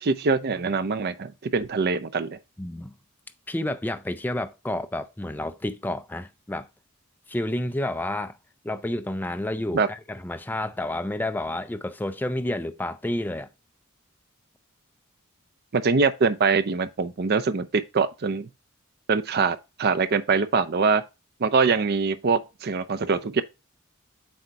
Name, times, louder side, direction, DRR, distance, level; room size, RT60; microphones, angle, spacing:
voice 1, 0.0-2.4 9.7-9.9 15.7-18.5 19.1-21.0 21.4-23.4, right 4 dB, 50° right, 0.5 m, -23 dB
voice 2, 2.6-2.9 3.5-6.7 7.3-8.4 8.6-13.5, left 1 dB, 10° left, 0.4 m, -30 dB
7.8 x 2.7 x 4.6 m
head